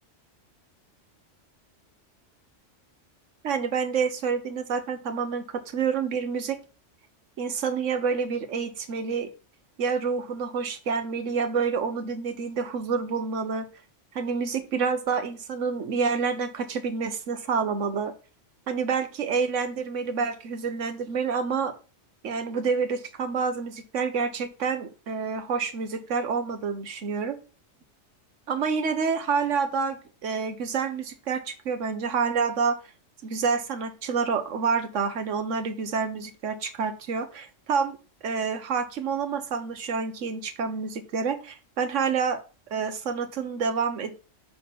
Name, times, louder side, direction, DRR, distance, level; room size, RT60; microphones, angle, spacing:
voice 1, 3.4-6.6 7.4-9.3 9.8-13.7 14.1-18.1 18.7-21.7 22.2-27.4 28.5-32.8 33.2-38.0 38.2-42.4 42.7-44.1, right 5 dB, 85° right, 9 dB, 1.3 m, -28 dB
6.5 x 5.4 x 4.2 m, 0.34 s
omnidirectional pair, 1.2 m